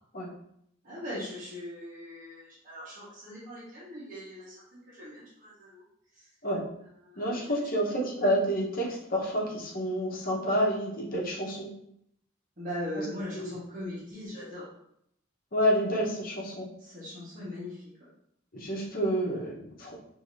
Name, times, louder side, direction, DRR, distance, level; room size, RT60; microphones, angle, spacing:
voice 1, 0.8-5.8 6.1-6.3 6.8-7.6 12.6-14.7 16.8-18.1, left 1 dB, 45° right, -7 dB, 1.3 m, -40 dB
voice 2, 7.2-11.7 13.3-13.5 15.5-16.7 18.5-20.0, equal, 45° left, -3 dB, 1.0 m, -29 dB
4.8 x 2.8 x 2.6 m, 0.72 s
head